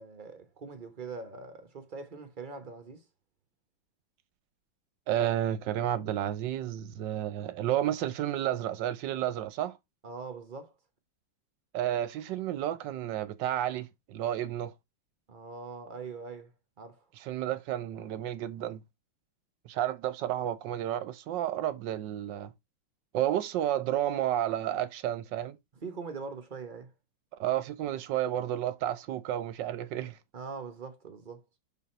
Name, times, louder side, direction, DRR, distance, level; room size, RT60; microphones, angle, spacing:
voice 1, 0.0-3.0 10.0-10.7 15.3-16.5 16.8-17.0 25.8-26.9 30.3-31.6, right 4 dB, 40° right, 0.7 m, -42 dB
voice 2, 5.1-9.8 11.7-14.7 17.2-18.8 19.6-22.5 23.1-25.6 27.4-30.2, right 12 dB, 70° right, 1.3 m, -31 dB
6.3 x 4.0 x 4.2 m
omnidirectional pair, 2.2 m